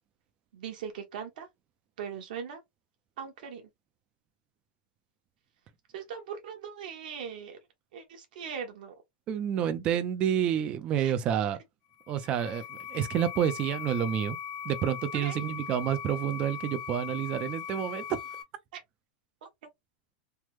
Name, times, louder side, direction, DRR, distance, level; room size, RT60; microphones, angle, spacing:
voice 1, 0.5-1.5 2.0-2.6 3.2-3.7 5.9-7.6 7.9-9.0 11.0-11.1 15.1-15.4 18.7-18.8 19.4-19.5, right 7 dB, 60° right, 1.0 m, -40 dB
voice 2, 9.3-11.6 12.1-14.4 14.6-18.2, right 9 dB, 20° right, 0.3 m, -29 dB
sound 1, 11.9-18.4, left 8 dB, 55° left, 1.0 m, -40 dB
3.3 x 2.0 x 3.0 m
supercardioid pair, 175°, 5 cm